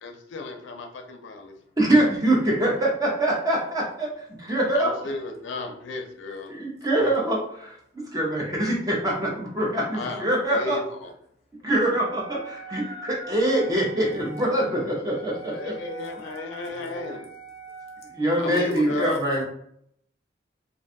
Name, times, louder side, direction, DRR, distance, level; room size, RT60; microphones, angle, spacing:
voice 1, 0.0-1.5 4.7-6.5 9.9-11.1 15.5-17.3 18.4-19.2, left 3 dB, 90° left, 4 dB, 0.4 m, -34 dB
voice 2, 1.8-5.1 6.5-10.8 11.6-15.7 18.1-19.4, right 1 dB, 20° right, -3 dB, 0.5 m, -24 dB
Wind instrument woodwind instrument, 11.9-18.4, right 2 dB, ahead, 0.9 m, -43 dB
voice 3, 15.2-16.1 16.7-17.2 18.3-19.4, left 1 dB, 35° left, -1 dB, 0.6 m, -42 dB
2.4 x 2.2 x 2.6 m, 0.70 s
head